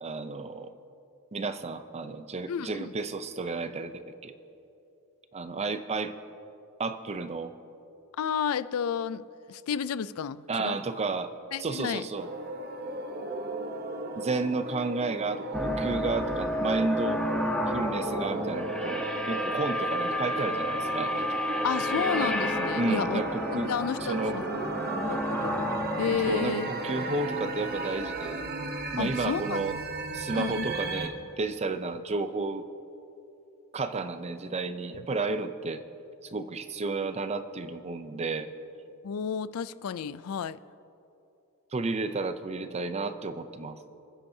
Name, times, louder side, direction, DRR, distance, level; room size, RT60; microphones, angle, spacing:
voice 1, 0.0-0.7 1.3-4.3 5.3-6.1 6.8-7.5 10.5-11.3 11.6-12.3 14.2-17.2 17.7-21.3 22.7-23.7 24.0-24.4 26.3-28.5 28.9-29.8 30.1-32.6 33.7-35.8 36.2-38.5 41.7-43.8, right 3 dB, 30° right, 10 dB, 0.5 m, -32 dB
voice 2, 2.5-2.9 8.2-10.8 11.5-12.1 21.6-23.2 23.5-24.4 24.9-25.6 26.0-26.7 29.0-29.6 30.1-30.7 39.0-40.6, left 7 dB, 75° left, 17 dB, 0.4 m, -31 dB
sound 1, 12.2-31.1, right 2 dB, 45° right, 1.0 m, -35 dB
sound 2, 15.5-27.6, left 1 dB, 5° left, 0.9 m, -31 dB
29.5 x 10.0 x 2.7 m, 2.9 s
head